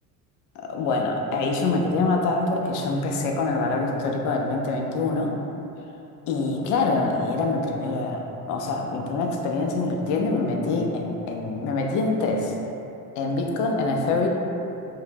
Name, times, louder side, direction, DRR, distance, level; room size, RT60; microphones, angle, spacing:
voice 1, 0.6-5.4 6.3-12.5 13.2-14.3, left 3 dB, 45° left, 1 dB, 0.5 m, -25 dB
2.7 x 2.1 x 3.3 m, 2.9 s
hypercardioid pair, 75°, 46 cm